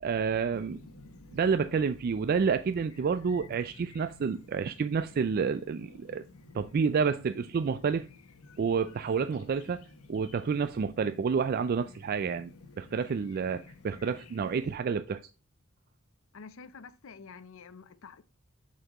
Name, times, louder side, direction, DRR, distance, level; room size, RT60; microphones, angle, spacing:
voice 1, 0.0-0.8 1.3-6.2 6.5-8.1 8.6-9.8 10.1-12.5 12.8-15.2, right 5 dB, 45° right, 0.3 m, -29 dB
Chirp tweet, 0.5-14.8, left 3 dB, 85° left, 1.0 m, -53 dB
voice 2, 16.3-18.2, left 5 dB, 65° left, 0.6 m, -48 dB
7.3 x 5.6 x 3.0 m
head